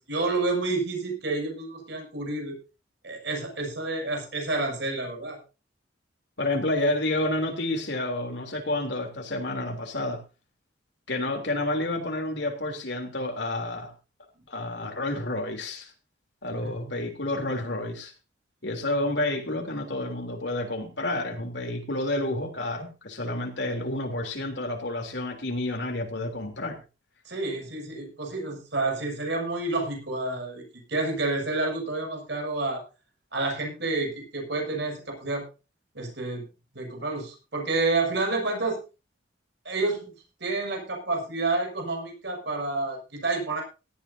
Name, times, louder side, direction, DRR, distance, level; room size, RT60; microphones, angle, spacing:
voice 1, 0.1-2.6 3.0-5.4 16.6-16.7 27.3-30.6 30.9-32.8 33.3-35.5 35.9-36.5 36.7-38.8 39.7-40.1 40.4-43.6, right 3 dB, 65° right, 2 dB, 7.0 m, -29 dB
voice 2, 6.4-10.2 11.1-13.9 14.5-15.9 16.4-18.1 18.6-26.8, left 1 dB, 65° left, 4 dB, 3.3 m, -29 dB
17.5 x 13.5 x 2.8 m, 0.30 s
head